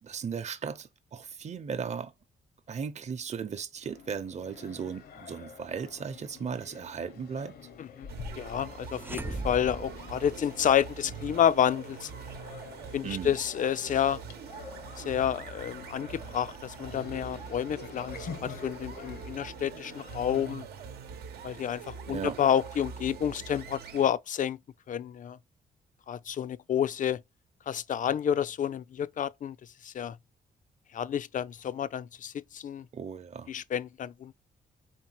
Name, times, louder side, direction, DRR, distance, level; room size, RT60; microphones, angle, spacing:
voice 1, 0.0-2.1 2.7-7.6 13.0-13.3 22.1-22.4 32.9-33.5, right 6 dB, 45° right, 0.8 m, -36 dB
sound 1, 3.8-20.5, left 6 dB, 75° left, 1.0 m, -48 dB
sound 2, 8.1-24.1, right 6 dB, 85° right, 0.9 m, -44 dB
voice 2, 8.3-12.1 12.9-14.2 15.0-16.1 16.3-20.7 21.4-24.6 24.9-25.4 26.1-27.2 27.7-29.6 29.8-30.2 30.9-32.8 33.5-34.3, left 9 dB, 55° left, 0.4 m, -29 dB
sound 3, 8.9-10.9, right 2 dB, 15° right, 0.3 m, -38 dB
4.4 x 3.7 x 2.9 m
cardioid pair, 60°, 16 cm